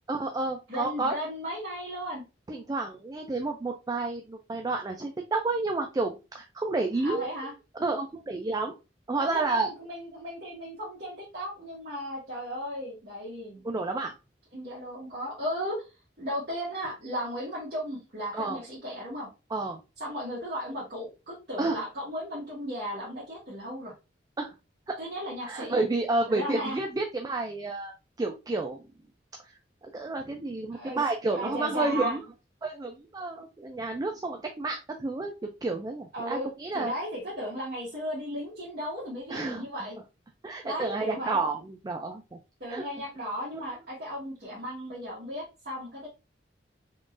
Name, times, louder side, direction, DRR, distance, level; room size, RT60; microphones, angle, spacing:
voice 1, 0.1-1.2 2.5-7.3 7.8-8.7 9.1-9.7 13.6-14.1 18.3-18.6 19.5-19.8 21.6-21.8 24.4-24.5 24.9-25.0 25.5-28.8 29.4-29.5 29.9-32.2 32.6-35.3 35.6-36.9 39.3-39.6 40.4-42.4 42.7-42.8 43.5-43.6, right 3 dB, 20° right, 3 dB, 0.3 m, -30 dB
voice 2, 0.7-2.2 7.0-7.5 9.2-13.6 14.5-15.9 16.2-19.3 20.0-23.9 25.0-25.8 26.3-26.8 30.7-32.2 36.1-36.5 36.7-40.0 40.6-41.4 42.6-46.1, equal, 55° right, -9 dB, 1.4 m, -35 dB
3.7 x 3.1 x 2.5 m, 0.28 s
head